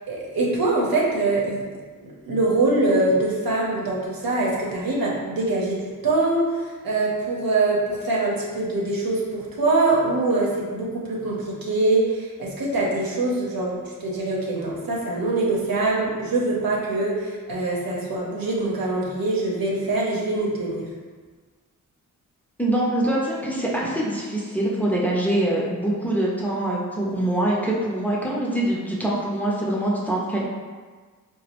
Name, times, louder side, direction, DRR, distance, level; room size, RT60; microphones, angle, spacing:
voice 1, 0.1-1.6 2.0-20.9, right 2 dB, 85° right, -4 dB, 0.8 m, -23 dB
voice 2, 22.6-30.4, right 1 dB, 5° left, -5 dB, 0.6 m, -24 dB
4.0 x 2.0 x 2.9 m, 1.5 s
wide cardioid pair, 100°, 34 cm